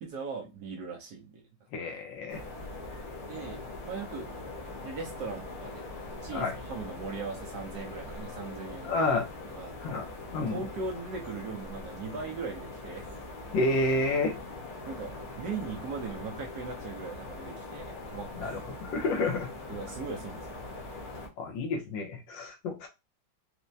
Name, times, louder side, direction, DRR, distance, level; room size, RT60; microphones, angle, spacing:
voice 1, 0.0-1.4 3.2-4.5 4.7-5.8 6.2-9.1 9.5-9.8 10.5-13.1 14.9-18.6 19.7-20.6 20.8-20.9, right 4 dB, 65° right, 1.1 m, -39 dB
voice 2, 1.7-2.4 6.3-6.5 8.8-9.3 9.8-10.0 10.3-10.6 13.5-14.4 18.4-19.5 21.4-22.9, left 2 dB, 75° left, 1.4 m, -29 dB
sound 1, 2.3-21.3, left 2 dB, 55° left, 1.3 m, -42 dB
4.3 x 2.1 x 2.6 m
omnidirectional pair, 2.2 m